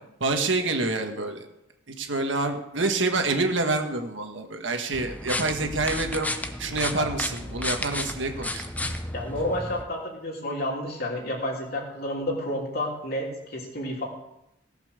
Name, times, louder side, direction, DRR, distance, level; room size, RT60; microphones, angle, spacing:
voice 1, 0.2-1.5 1.9-6.3 6.6-8.9, right 3 dB, 75° right, 5 dB, 1.6 m, -27 dB
sound 1, 4.9-9.8, left 1 dB, 10° left, 0.8 m, -32 dB
voice 2, 9.1-14.0, left 1 dB, 55° left, -1 dB, 3.4 m, -30 dB
17.5 x 5.9 x 6.8 m, 0.84 s
head